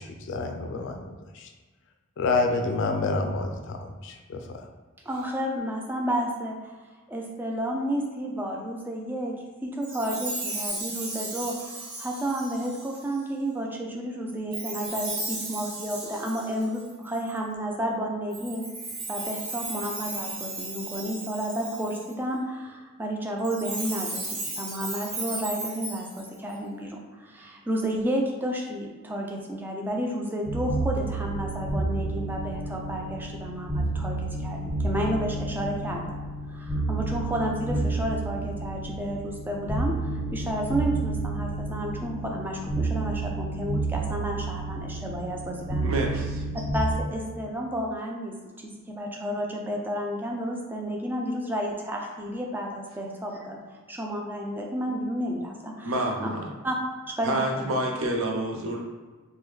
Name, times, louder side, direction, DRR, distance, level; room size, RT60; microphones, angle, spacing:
voice 1, 0.0-1.5 2.2-4.7, left 3 dB, 60° left, 4 dB, 0.4 m, -28 dB
voice 2, 5.1-6.7 7.1-18.6 19.1-36.0 36.5-46.0 46.5-53.6 53.9-56.3 56.6-56.8 57.1-57.6, equal, 10° right, 0 dB, 0.4 m, -31 dB
Chime, 9.8-13.2 14.5-17.4 18.3-22.1 23.4-26.5, right 2 dB, 90° right, 0.9 m, -35 dB
sound 1, 30.5-47.0, right 2 dB, 10° left, 1.0 m, -30 dB
voice 3, 45.8-46.4 55.8-56.5 57.2-58.8, right 1 dB, 70° right, 1 dB, 0.6 m, -28 dB
3.0 x 2.2 x 3.4 m, 1.3 s
head